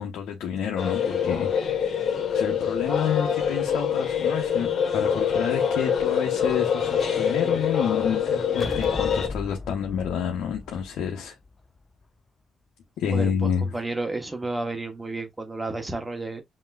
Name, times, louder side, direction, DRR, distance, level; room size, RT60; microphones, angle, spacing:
voice 1, 0.0-11.3 13.0-13.7, left 8 dB, 80° left, 0.9 m, -29 dB
sound 1, 0.8-9.3, left 7 dB, 60° left, 1.7 m, -25 dB
sound 2, 8.6-12.0, left 3 dB, 25° left, 0.6 m, -37 dB
voice 2, 13.1-16.4, right 2 dB, 15° right, 1.2 m, -31 dB
5.4 x 3.0 x 2.4 m
cardioid pair, 90°, 0 cm